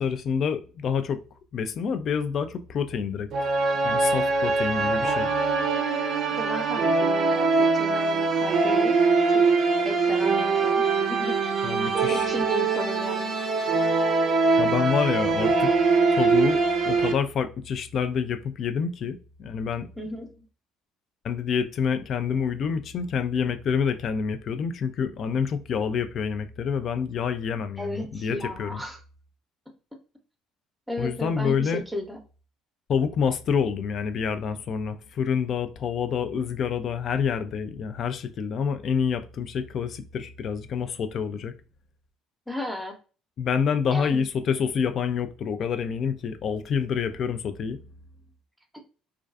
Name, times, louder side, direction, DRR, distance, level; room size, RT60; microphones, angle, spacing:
voice 1, 0.0-1.2 1.5-3.3 3.8-5.3 11.6-12.3 14.6-15.7 16.2-19.9 21.2-28.8 31.0-31.8 32.9-41.5 43.4-47.8, left 6 dB, 55° left, 0.3 m, -27 dB
sound 1, 3.3-17.1, right 4 dB, 55° right, 0.5 m, -23 dB
voice 2, 6.3-9.0 9.3-9.4 9.8-11.4 12.1-13.4 20.0-20.3 27.8-29.0 29.9-30.0 30.9-32.2 42.5-43.0 43.9-44.2 48.7-48.8, left 1 dB, 5° right, 0.7 m, -34 dB
2.3 x 2.3 x 2.3 m
hypercardioid pair, 60°, 0 cm